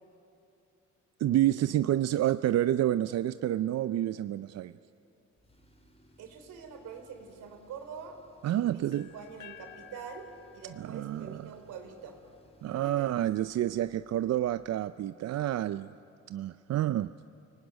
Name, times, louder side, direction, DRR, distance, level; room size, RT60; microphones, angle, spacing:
voice 1, 1.2-4.8 8.4-9.1 10.8-11.4 12.6-15.9 16.3-17.1, right 12 dB, 60° right, 13 dB, 0.5 m, -29 dB
Tools, 5.4-14.8, left 1 dB, 20° left, 4.5 m, -63 dB
voice 2, 6.2-8.2 8.4-10.3 10.5-12.2 12.8-13.1, right 6 dB, 85° right, 5 dB, 3.6 m, -45 dB
sound 1, 8.9-12.8, left 10 dB, 85° left, 1.0 m, -55 dB
29.5 x 19.5 x 9.3 m, 2.8 s
cardioid pair, 90°, 30 cm